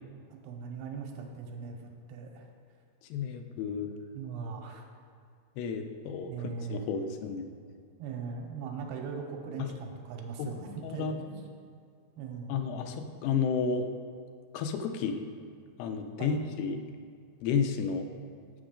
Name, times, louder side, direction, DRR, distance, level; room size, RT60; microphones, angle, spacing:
voice 1, 0.4-2.5 4.1-4.8 6.3-6.9 8.0-11.3 12.2-12.6 16.2-16.4, right 5 dB, 90° right, 3 dB, 2.6 m, -39 dB
voice 2, 3.1-3.9 5.6-6.3 6.7-7.5 10.4-10.5 10.8-11.1 12.5-13.9 14.5-15.3 15.8-16.8 17.4-18.1, left 6 dB, 85° left, 6 dB, 2.5 m, -31 dB
7.3 x 6.0 x 5.0 m, 2.2 s
omnidirectional pair, 4.6 m